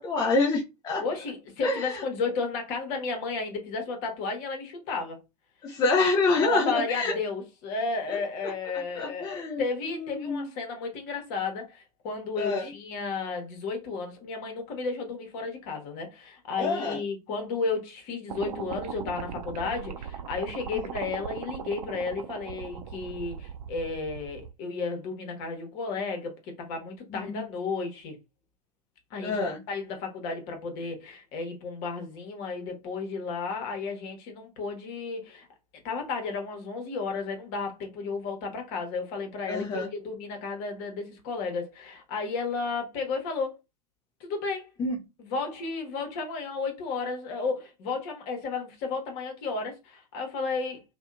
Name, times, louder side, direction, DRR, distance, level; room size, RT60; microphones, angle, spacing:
voice 1, 0.0-1.0 1.6-2.0 5.6-7.2 8.1-8.2 9.0-9.6 9.9-10.5 12.4-12.7 16.6-17.0 27.1-27.4 29.2-29.6 39.5-39.9 44.8-45.0, left 3 dB, 20° left, 0.5 m, -27 dB
voice 2, 1.0-5.2 6.3-28.2 29.1-29.4 29.7-35.5 35.8-43.6 44.2-44.6 45.2-50.8, left 4 dB, 45° left, 1.0 m, -33 dB
sound 1, 18.3-24.5, right 7 dB, 70° right, 0.5 m, -38 dB
2.7 x 2.2 x 2.4 m
figure-of-eight pair, 95°, 21 cm